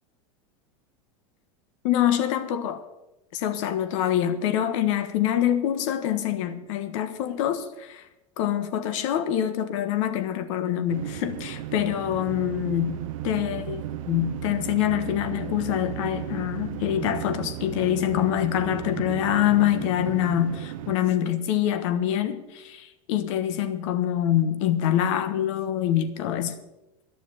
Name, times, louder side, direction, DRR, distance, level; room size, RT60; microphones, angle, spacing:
voice 1, 1.8-2.8 3.3-8.0 8.4-26.6, left 11 dB, 65° left, 1.4 m, -25 dB
sound 1, 10.9-21.0, right 12 dB, 75° right, 0.9 m, -35 dB
12.0 x 7.0 x 9.4 m
hypercardioid pair, 115°, 17 cm